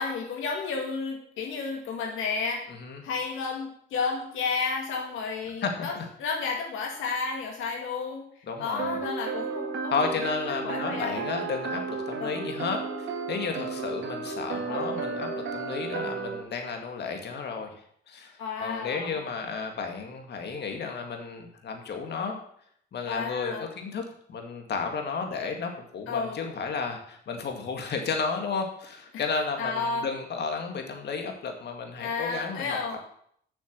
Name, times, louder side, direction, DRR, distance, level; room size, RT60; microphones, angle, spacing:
voice 1, 0.0-2.7 3.0-8.3 8.6-9.9 10.5-11.3 12.2-12.4 14.7-15.0 18.4-19.2 23.1-23.7 26.1-26.4 29.1-29.2 29.6-30.1 32.0-33.0, left 4 dB, 85° left, 1 dB, 1.9 m, -32 dB
voice 2, 2.7-3.0 5.6-6.1 8.5-9.0 9.9-22.4 22.9-32.8, left 5 dB, 60° left, 4 dB, 2.0 m, -33 dB
sound 1, 8.8-16.4, right 4 dB, 75° right, 1.9 m, -33 dB
7.9 x 6.2 x 7.6 m, 0.66 s
cardioid pair, 90°, 20 cm